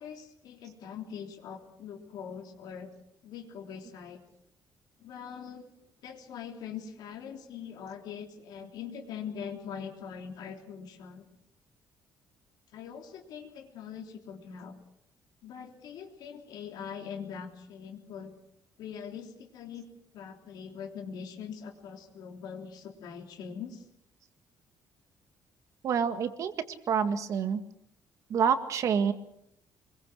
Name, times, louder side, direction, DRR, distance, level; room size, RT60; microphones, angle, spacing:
voice 1, 0.0-2.9 3.2-4.2 5.0-5.7 6.0-11.2 12.7-14.7 15.4-18.3 18.8-19.8 20.1-23.8, left 7 dB, 75° left, 3 dB, 3.4 m, -42 dB
voice 2, 25.8-26.5 26.9-27.6 28.3-29.1, right 7 dB, 50° right, 9 dB, 1.8 m, -27 dB
25.5 x 22.0 x 6.3 m, 0.73 s
cardioid pair, 180°, 7 cm